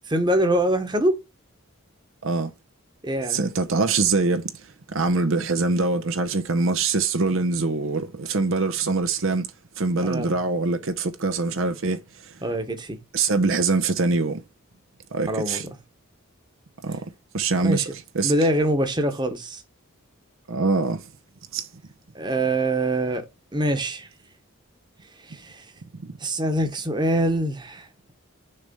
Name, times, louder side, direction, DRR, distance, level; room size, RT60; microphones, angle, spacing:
voice 1, 0.1-1.1 3.0-3.4 10.0-10.3 12.4-13.0 15.3-15.7 17.6-17.9 18.2-19.6 22.1-23.2 23.5-24.1 25.2-25.7 26.2-28.1, right 1 dB, 20° right, 1.1 m, -24 dB
voice 2, 3.3-9.5 9.8-12.3 13.1-14.4 15.1-15.6 16.8-17.0 17.3-17.8 18.1-18.3 20.5-21.1 21.5-21.7 25.9-26.1, right 3 dB, 65° right, 0.7 m, -24 dB
6.7 x 3.4 x 5.3 m
head